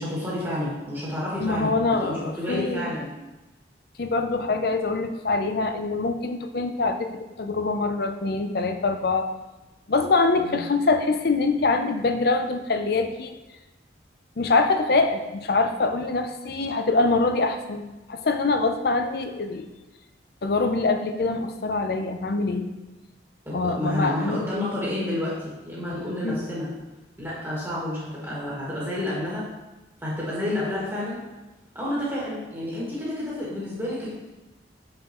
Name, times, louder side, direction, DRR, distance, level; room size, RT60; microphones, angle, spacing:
voice 1, 0.0-3.1 10.4-10.6 23.5-26.7 27.2-29.4 30.0-31.2 31.7-34.1, left 1 dB, 10° right, -8 dB, 1.8 m, -30 dB
voice 2, 1.4-2.9 4.0-7.1 7.4-9.3 9.9-13.4 14.4-19.6 20.4-22.7 23.5-24.4 26.2-26.4, left 3 dB, 55° left, 7 dB, 0.5 m, -24 dB
6.6 x 6.2 x 3.0 m, 1.1 s
head